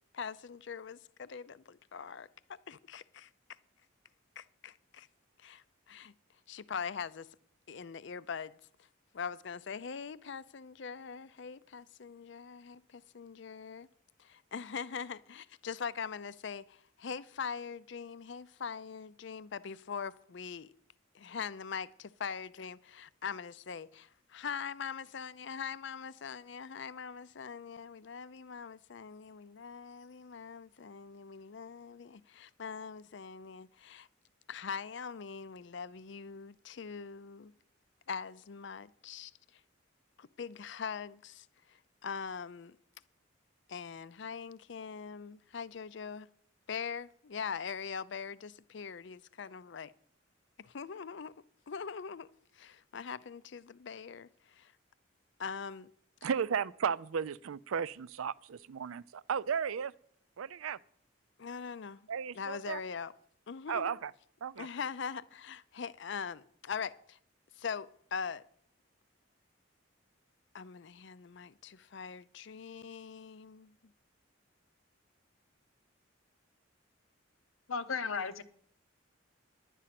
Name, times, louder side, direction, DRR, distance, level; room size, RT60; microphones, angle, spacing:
voice 1, 0.1-3.3 4.4-5.1 5.4-6.1 6.5-7.3 7.7-8.9 9.1-13.9 14.2-20.7 21.1-34.1 34.5-37.5 38.1-39.6 40.2-42.8 43.7-46.3 46.7-49.9 50.6-51.3 51.7-52.3 52.5-54.7 55.4-55.9 56.2-56.3 61.4-62.1 62.3-63.1 63.5-63.9 64.6-67.2 67.5-68.4 70.5-73.8, left 6 dB, 60° left, 0.5 m, -42 dB
voice 2, 56.2-59.9 60.4-60.8 62.1-62.8 63.7-64.1 64.4-64.7, right 7 dB, 85° right, 0.4 m, -34 dB
voice 3, 77.7-78.4, left 5 dB, 80° left, 0.8 m, -34 dB
11.0 x 9.7 x 5.9 m
head